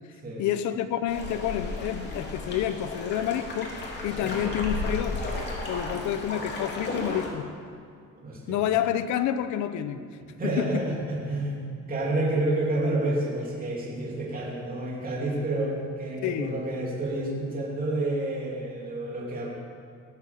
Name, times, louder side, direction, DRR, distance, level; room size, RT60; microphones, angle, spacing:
voice 1, 0.4-3.8 4.0-5.2 5.6-7.5 8.5-10.0 10.4-10.8 16.2-16.5, left 10 dB, 75° left, 10 dB, 0.9 m, -28 dB
sound 1, 1.1-7.3, left 2 dB, 35° left, 3.3 m, -34 dB
voice 2, 8.2-8.6 10.2-19.5, right 2 dB, 30° right, -4 dB, 3.2 m, -29 dB
18.5 x 8.0 x 7.4 m, 2.3 s
cardioid pair, 130°, 30 cm